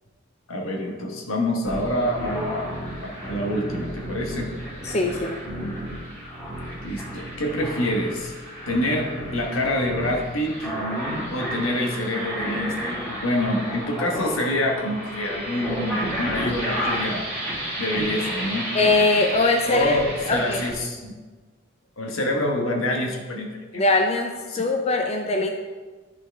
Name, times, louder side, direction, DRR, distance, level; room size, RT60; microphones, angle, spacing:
voice 1, 0.5-2.7 3.2-4.5 6.8-8.3 8.7-10.7 11.3-17.3 17.8-18.7 19.7-21.1 22.0-23.8 24.5-24.7, left 1 dB, 85° left, 1 dB, 1.3 m, -26 dB
sound 1, 1.7-20.7, equal, 10° left, 2.1 m, -31 dB
voice 2, 4.8-5.3 18.7-20.0 20.3-20.6 23.7-25.5, left 2 dB, 30° left, 3 dB, 0.5 m, -21 dB
10.5 x 4.6 x 3.4 m, 1.4 s
head